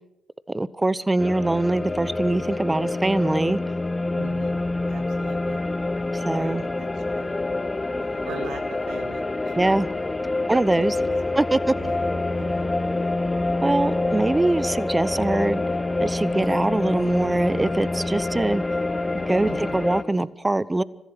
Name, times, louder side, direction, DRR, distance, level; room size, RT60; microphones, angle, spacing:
voice 1, 0.5-3.6 6.1-6.6 9.6-9.9 10.5-10.9 11.4-11.8 13.6-15.6 16.0-18.6 19.3-20.8, right 2 dB, 20° right, 19 dB, 0.8 m, -23 dB
sound 1, 1.2-20.0, left 2 dB, 25° left, 1.5 m, -26 dB
voice 2, 4.1-4.6 4.9-5.6 6.3-6.9 7.1-7.4 8.0-9.8 10.5-11.1 11.8-12.1 12.4-12.7 13.6-14.0 19.5-19.8, right 6 dB, 75° right, 6 dB, 2.0 m, -41 dB
29.0 x 15.0 x 6.1 m, 1.0 s
hypercardioid pair, 40°, 0 cm